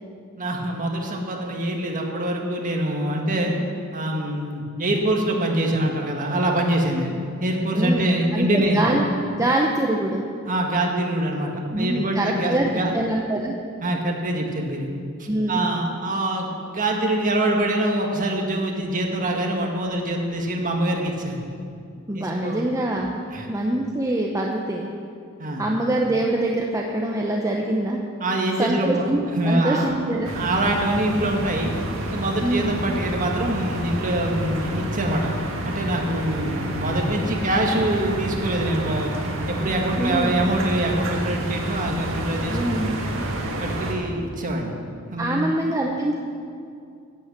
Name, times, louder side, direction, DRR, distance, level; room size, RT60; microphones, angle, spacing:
voice 1, 0.4-3.5 3.9-7.1 7.4-8.8 10.4-11.5 11.8-12.9 13.8-14.9 15.2-21.4 22.1-22.6 23.3-23.5 25.4-25.6 28.2-29.1 29.4-30.0 30.3-31.7 32.1-35.3 35.7-39.1 39.5-42.8 43.6-44.8 45.1-45.5, right 1 dB, 40° right, 1 dB, 1.8 m, -24 dB
voice 2, 8.3-9.0 9.3-10.2 11.7-13.6 15.3-15.6 22.1-23.1 23.5-24.9 25.6-28.0 28.6-30.3 32.4-32.7 40.0-40.3 42.5-43.0 45.2-46.1, right 1 dB, 15° right, -1 dB, 0.8 m, -24 dB
sound 1, 30.2-43.9, right 1 dB, 65° right, 1.8 m, -29 dB
11.0 x 9.3 x 7.5 m, 2.4 s
head